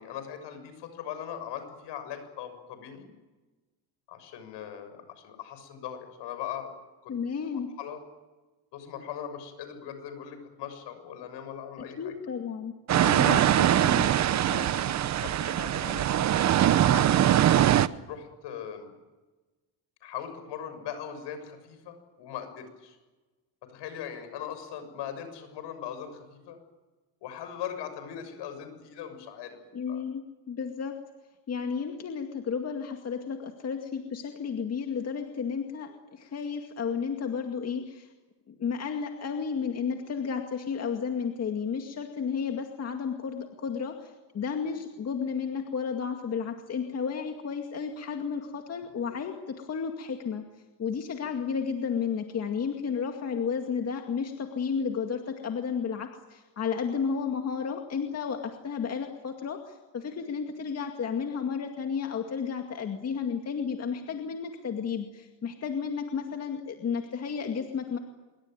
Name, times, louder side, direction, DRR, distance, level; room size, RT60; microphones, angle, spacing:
voice 1, 0.0-3.1 4.1-6.7 7.0-7.1 7.5-8.0 8.7-12.1 13.3-13.4 14.5-16.6 16.8-17.4 18.1-18.9 20.0-23.0 23.6-26.6 27.2-29.6 29.9-30.0, left 9 dB, 65° left, 9 dB, 6.8 m, -40 dB
voice 2, 7.1-7.7 12.0-12.7 13.0-14.1 29.7-31.0 31.5-38.1 38.5-50.4 50.8-68.0, left 6 dB, 35° left, 4 dB, 2.2 m, -32 dB
sound 1, 12.9-17.9, right 11 dB, 40° right, 0.8 m, -22 dB
26.5 x 23.0 x 9.2 m, 1.2 s
cardioid pair, 145°, 45 cm